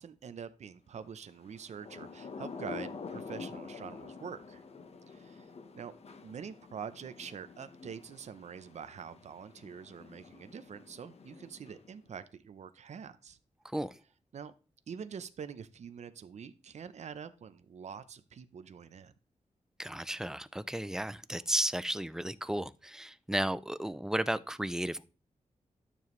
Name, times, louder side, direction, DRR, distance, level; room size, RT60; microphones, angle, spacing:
voice 1, 0.0-4.6 5.1-5.9 6.2-13.4 14.3-14.5 14.9-19.1, right 7 dB, 65° right, 0.7 m, -45 dB
Thunder / Rain, 1.5-12.1, left 4 dB, 55° left, 1.0 m, -47 dB
voice 2, 19.8-25.0, right 1 dB, 5° right, 0.4 m, -34 dB
12.5 x 7.0 x 3.1 m
wide cardioid pair, 145°, 13 cm